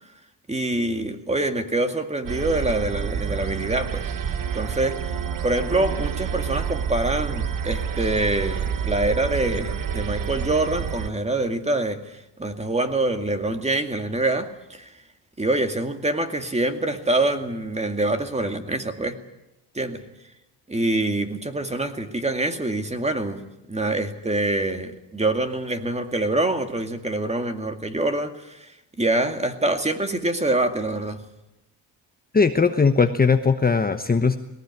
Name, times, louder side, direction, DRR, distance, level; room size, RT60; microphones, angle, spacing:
voice 1, 0.5-4.1 4.5-14.9 15.4-19.2 19.7-20.0 20.7-28.7 29.0-31.2, right 2 dB, 15° right, 7 dB, 2.2 m, -25 dB
sound 1, 2.3-11.1, right 7 dB, 45° right, 1.1 m, -28 dB
voice 2, 32.3-34.4, left 5 dB, 20° left, 7 dB, 1.1 m, -19 dB
19.5 x 18.0 x 9.6 m, 0.90 s
cardioid pair, 100°, 44 cm